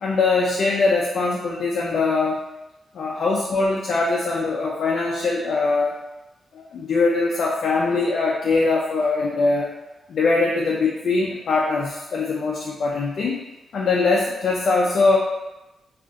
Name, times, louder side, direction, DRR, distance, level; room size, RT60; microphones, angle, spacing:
voice 1, 0.0-2.4 2.9-5.9 6.5-9.7 10.1-13.4 13.7-15.2, left 3 dB, 60° left, -4 dB, 0.4 m, -22 dB
2.4 x 2.4 x 3.8 m, 1.0 s
wide cardioid pair, 160°, 0 cm